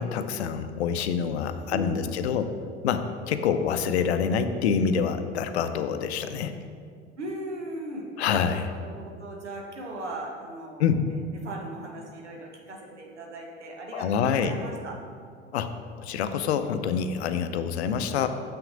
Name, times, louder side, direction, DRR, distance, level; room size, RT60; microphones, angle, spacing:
voice 1, 0.0-2.5 2.8-6.5 8.2-8.7 10.8-11.1 13.9-14.6 15.5-15.7 16.0-18.3, left 7 dB, 70° left, 10 dB, 0.6 m, -26 dB
voice 2, 1.7-2.2 7.2-8.1 8.6-14.9, right 1 dB, 80° right, 0 dB, 1.2 m, -38 dB
6.9 x 5.9 x 3.8 m, 2.2 s
figure-of-eight pair, 75°, 34 cm